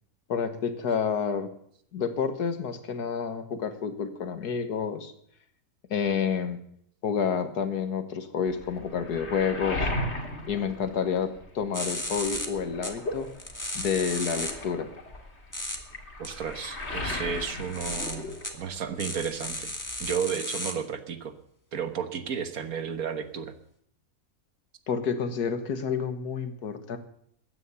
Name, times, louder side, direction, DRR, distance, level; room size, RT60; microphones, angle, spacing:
voice 1, 0.3-1.5 1.9-5.1 5.9-6.6 7.0-9.9 10.5-13.3 13.7-14.9 24.9-27.0, left 6 dB, 85° left, 9 dB, 1.9 m, -29 dB
Waves surf, 8.4-11.7 12.0-18.9 19.2-20.1, left 1 dB, 45° left, 2.4 m, -37 dB
sound 1, 11.7-12.5 12.8-12.9 13.4-14.5 15.5-15.8 16.2-16.3 17.4-18.5 19.0-20.7, left 1 dB, 10° left, 1.6 m, -34 dB
voice 2, 16.2-19.7 20.0-21.3 21.7-23.5, right 7 dB, 65° right, 10 dB, 1.6 m, -33 dB
14.5 x 10.0 x 7.0 m, 0.68 s
omnidirectional pair, 1.7 m